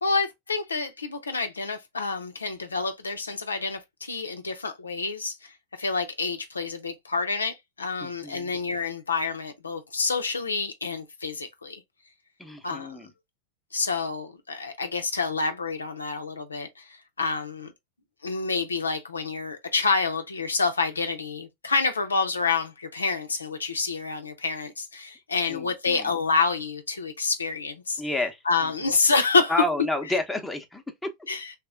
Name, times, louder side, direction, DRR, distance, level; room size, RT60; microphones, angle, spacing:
voice 1, 0.0-5.5 5.8-11.8 12.6-13.0 13.7-17.7 18.2-28.0 28.5-29.5 31.3-31.5, left 4 dB, 75° left, 0.6 m, -28 dB
voice 2, 8.0-8.5 12.4-13.1 25.5-26.1 28.0-28.9 29.5-31.1, left 1 dB, 5° left, 0.8 m, -31 dB
3.3 x 2.9 x 3.5 m
figure-of-eight pair, 90°, 0 cm